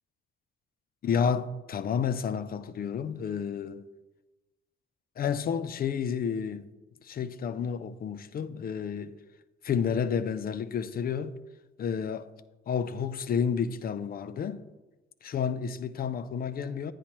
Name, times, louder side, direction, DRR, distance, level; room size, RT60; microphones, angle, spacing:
voice 1, 1.0-3.9 5.2-6.7 7.0-9.1 9.6-11.4 11.8-12.3 12.7-14.6 15.2-16.9, left 7 dB, 50° left, 0.6 m, -30 dB
9.9 x 9.8 x 3.0 m
cardioid pair, 90°, 20 cm